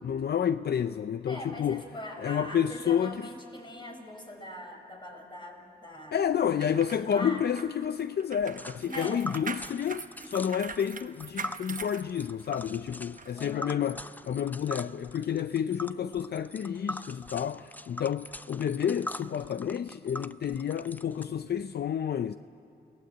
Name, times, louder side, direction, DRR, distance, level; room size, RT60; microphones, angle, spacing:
voice 1, 0.0-1.8 2.2-3.3 6.1-22.4, left 8 dB, 65° left, 0.5 m, -30 dB
voice 2, 1.3-6.7 7.0-7.5 8.9-9.2 10.2-10.4 13.4-13.8, left 1 dB, 25° left, 5.0 m, -42 dB
sound 1, 6.4-12.7 13.2-13.3, right 5 dB, 50° right, 1.0 m, -42 dB
Tick, 8.6-21.2, left 1 dB, 10° left, 0.5 m, -42 dB
29.5 x 18.5 x 8.0 m
cardioid pair, 75°, 18 cm